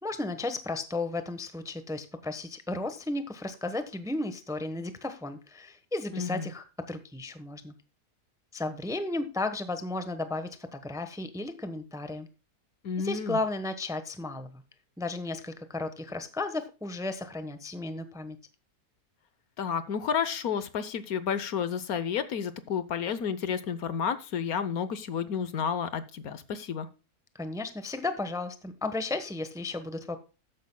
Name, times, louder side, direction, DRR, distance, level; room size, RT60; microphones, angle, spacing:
voice 1, 0.0-7.7 8.5-12.3 13.0-14.6 15.0-18.4 27.3-30.2, left 2 dB, 5° right, 10 dB, 0.8 m, -34 dB
voice 2, 6.1-6.5 12.8-13.4 19.6-26.9, left 7 dB, 70° left, 13 dB, 1.3 m, -31 dB
13.5 x 10.0 x 2.2 m, 0.31 s
omnidirectional pair, 1.7 m